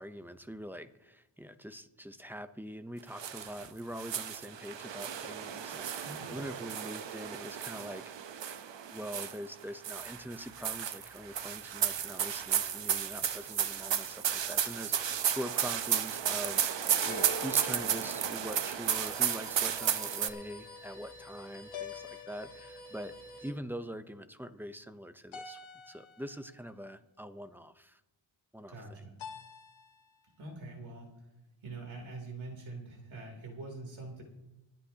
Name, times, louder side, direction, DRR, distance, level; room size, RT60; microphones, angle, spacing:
voice 1, 0.0-8.0 8.9-23.1 23.4-25.6 25.9-28.0 28.5-29.0, equal, 5° right, 10 dB, 0.6 m, -43 dB
sound 1, 3.2-3.7 4.0-9.5 9.8-20.3, right 9 dB, 70° right, 0.9 m, -33 dB
voice 2, 6.0-6.4 28.7-29.1 30.4-31.1 31.6-34.2, right 2 dB, 85° right, 0 dB, 3.2 m, -44 dB
sound 2, 9.9-23.5, left 1 dB, 60° left, 4.7 m, -53 dB
sound 3, 12.6-13.3 17.0-19.0 21.7-23.1 25.3-26.5 29.2-30.2, left 4 dB, 85° left, 1.1 m, -46 dB
25.5 x 9.1 x 2.8 m, 0.95 s
wide cardioid pair, 100°, 46 cm